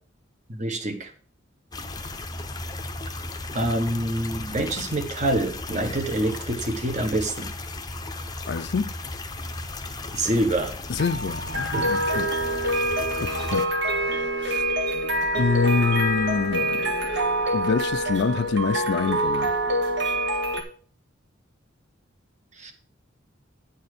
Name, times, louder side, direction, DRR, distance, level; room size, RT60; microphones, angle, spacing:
voice 1, 0.5-1.1 3.5-7.5 10.1-10.8 11.7-11.9 22.6-22.7, right 1 dB, 40° right, 1.3 m, -26 dB
sound 1, 1.7-13.7, left 2 dB, 20° left, 0.7 m, -35 dB
voice 2, 8.5-8.9 10.9-12.4 13.2-13.7 14.0-14.7 15.3-16.9 17.5-19.6, left 5 dB, 60° left, 0.4 m, -26 dB
sound 2, 9.6-20.6, right 1 dB, 60° right, 1.6 m, -26 dB
9.7 x 4.2 x 6.6 m
head